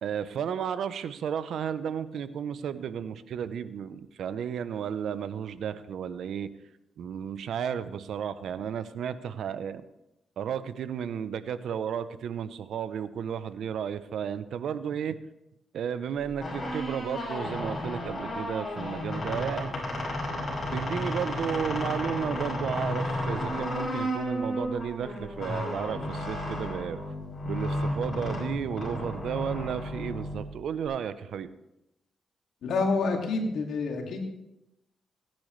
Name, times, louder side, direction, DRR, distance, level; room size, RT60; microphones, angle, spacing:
voice 1, 0.0-6.5 7.0-9.8 10.4-15.2 15.7-19.7 20.7-27.0 27.4-31.5, right 8 dB, 80° right, 13 dB, 0.6 m, -33 dB
sound 1, 16.2-30.9, left 1 dB, 35° left, 5.4 m, -33 dB
voice 2, 32.6-34.2, left 3 dB, 80° left, 2 dB, 2.3 m, -28 dB
17.0 x 10.5 x 3.2 m, 0.89 s
cardioid pair, 70°, 0 cm